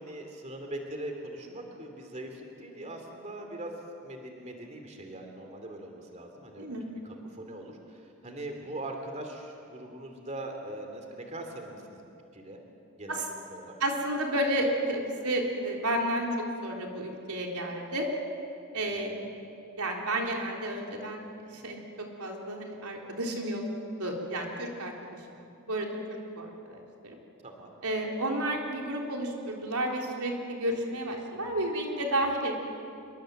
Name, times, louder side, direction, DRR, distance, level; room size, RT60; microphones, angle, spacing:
voice 1, 0.0-12.6 13.0-13.2 13.5-13.8 19.1-19.3 27.4-27.7, right 1 dB, 30° right, 3 dB, 2.9 m, -41 dB
voice 2, 13.8-16.3 16.6-18.1 18.7-19.1 19.8-21.2 21.5-21.8 22.2-23.6 24.0-24.9 25.3-25.9 26.4-27.2 27.8-32.6, right 1 dB, 90° right, 0 dB, 3.9 m, -31 dB
27.0 x 23.5 x 7.9 m, 2.6 s
head